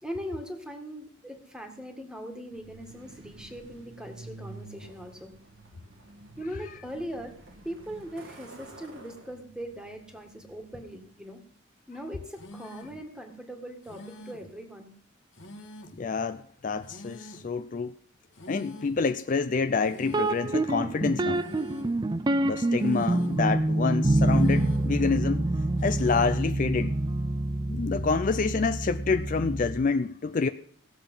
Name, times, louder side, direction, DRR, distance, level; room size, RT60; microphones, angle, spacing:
voice 1, 0.0-5.3 6.4-7.4 7.6-11.4 11.9-14.9, equal, 5° right, 1.7 m, -40 dB
Truck, 2.5-11.2, right 2 dB, 80° right, 1.6 m, -49 dB
sound 1, 12.3-13.0 13.8-14.6 15.3-16.1 16.8-17.5 18.3-19.0 19.8-20.5 21.3-22.0 22.8-23.5 24.3-25.0 25.8-26.5, left 1 dB, 70° left, 1.4 m, -46 dB
voice 2, 16.0-17.9 18.5-21.5 22.4-25.4 25.8-27.0 27.7-30.5, left 4 dB, 40° left, 0.4 m, -27 dB
sound 2, 20.1-29.9, right 1 dB, 20° right, 0.4 m, -27 dB
17.0 x 7.2 x 5.5 m
head